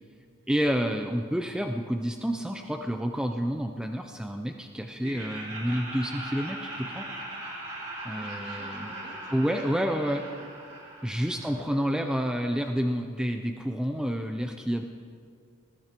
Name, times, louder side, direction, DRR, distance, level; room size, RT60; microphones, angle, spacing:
voice 1, 0.5-7.0 8.0-8.9 9.3-10.2 11.0-14.8, equal, 5° right, 4 dB, 0.4 m, -29 dB
Laughter, 5.0-11.9, right 1 dB, 35° right, 3.3 m, -40 dB
voice 2, 8.1-10.8 11.0-12.3, right 1 dB, 55° right, 0 dB, 2.0 m, -50 dB
19.5 x 14.0 x 3.0 m, 2.2 s
head